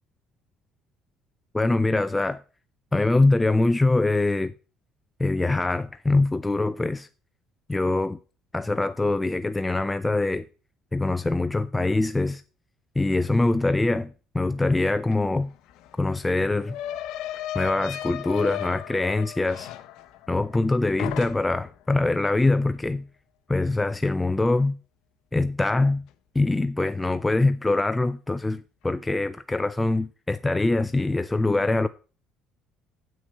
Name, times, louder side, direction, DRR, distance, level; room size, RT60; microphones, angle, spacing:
voice 1, 1.5-2.4 2.9-4.5 5.2-7.1 7.7-8.2 8.5-10.5 10.9-12.4 13.0-15.5 16.0-16.8 17.5-19.7 20.3-23.0 23.5-24.8 25.3-26.0 26.4-31.9, left 2 dB, 10° left, 0.4 m, -23 dB
sound 1, 15.1-15.2 15.5-20.7 21.0-21.7, left 12 dB, 75° left, 0.9 m, -35 dB
8.0 x 6.2 x 6.8 m
cardioid pair, 145°, 0 cm